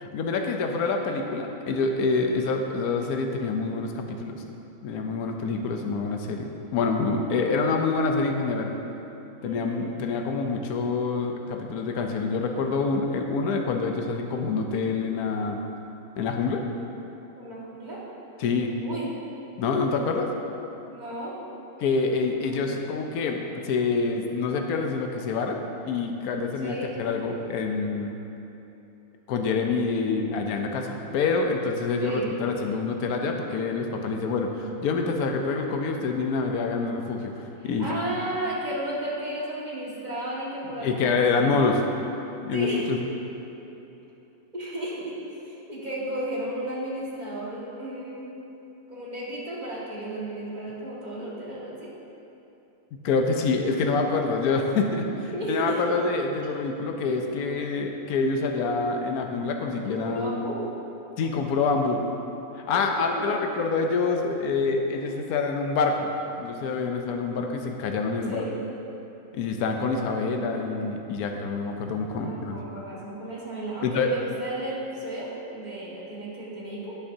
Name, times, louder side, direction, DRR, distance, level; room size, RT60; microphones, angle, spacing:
voice 1, 0.0-4.4 4.8-8.7 9.4-15.6 16.2-16.6 18.4-18.7 19.6-20.3 21.8-28.1 29.3-37.3 37.6-37.9 40.8-41.8 42.4-43.0 53.0-60.4 61.2-62.0 62.6-66.1 66.4-68.4 69.3-72.6 73.8-74.1, left 4 dB, 85° left, 3 dB, 1.2 m, -26 dB
voice 2, 9.4-9.8 17.3-18.0 18.8-19.1 20.9-21.4 22.4-22.6 26.6-26.9 32.0-32.3 37.6-41.5 42.5-42.9 44.5-45.2 45.5-48.4 48.9-51.9 55.3-55.8 59.9-60.6 63.0-63.3 68.3-68.5 72.1-76.9, right 1 dB, 30° right, -6 dB, 1.8 m, -33 dB
16.5 x 5.8 x 2.7 m, 3.0 s
omnidirectional pair, 1.6 m